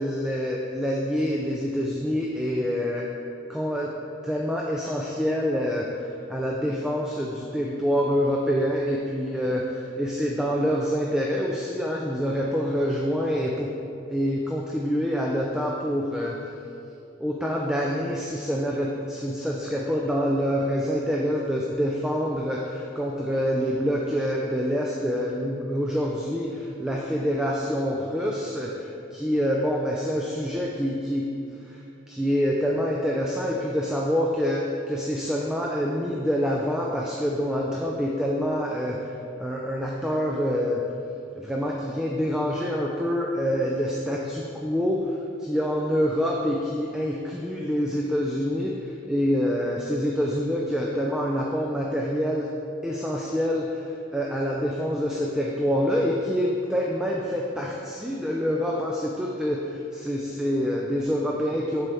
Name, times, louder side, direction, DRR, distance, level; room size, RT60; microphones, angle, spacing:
voice 1, 0.0-3.1 3.5-4.0 4.2-13.7 14.1-16.4 17.2-31.3 31.6-31.8 32.1-39.1 39.4-40.8 41.3-52.5 52.8-61.9, equal, 5° right, -2 dB, 0.3 m, -26 dB
7.5 x 5.5 x 3.4 m, 2.7 s
head